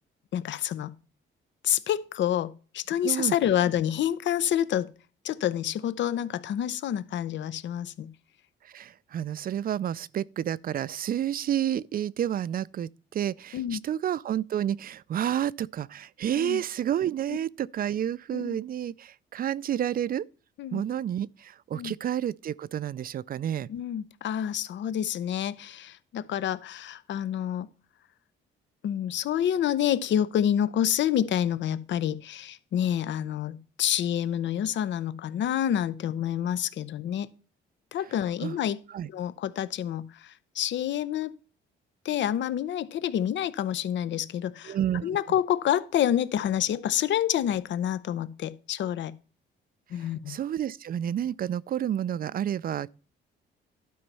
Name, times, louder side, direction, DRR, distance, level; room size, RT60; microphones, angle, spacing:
voice 1, 0.3-0.9 1.6-4.9 5.2-8.1 13.5-13.8 16.4-16.6 18.3-18.6 20.6-20.8 21.7-21.9 23.7-27.7 28.8-37.3 37.9-38.8 39.1-41.3 42.0-44.8 45.0-49.2 49.9-50.4, left 10 dB, 70° left, 0.7 m, -28 dB
voice 2, 3.0-3.3 8.6-20.3 20.7-23.7 38.4-38.6 38.9-39.1 44.7-45.2 50.0-52.9, right 10 dB, 45° right, 0.4 m, -30 dB
11.5 x 4.4 x 5.4 m
cardioid pair, 90°, 20 cm